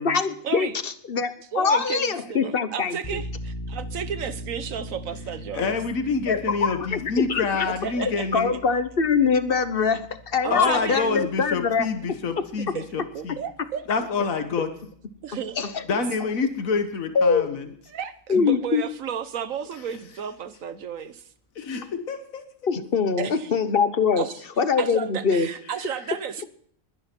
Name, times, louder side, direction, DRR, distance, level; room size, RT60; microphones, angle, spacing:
voice 1, 0.0-3.2 6.3-7.7 7.9-12.2 12.7-12.8 15.6-15.8 17.1-17.6 18.3-18.8 22.7-24.3 24.6-25.5, left 5 dB, 45° left, 11 dB, 1.2 m, -23 dB
voice 2, 1.5-5.8 7.8-8.4 10.4-11.3 12.7-12.9 13.1-13.8 15.2-15.6 15.9-16.0 17.9-21.2 23.2-23.5 24.2-24.3 24.8-26.5, right 8 dB, 80° right, 12 dB, 1.4 m, -33 dB
sound 1, 3.0-14.3, equal, 25° left, 1.9 m, -41 dB
voice 3, 5.5-8.5 10.5-13.4 13.9-14.7 15.9-17.7 21.5-22.4, left 4 dB, 85° left, 7 dB, 1.7 m, -27 dB
21.0 x 10.5 x 4.5 m, 0.62 s
omnidirectional pair, 1.4 m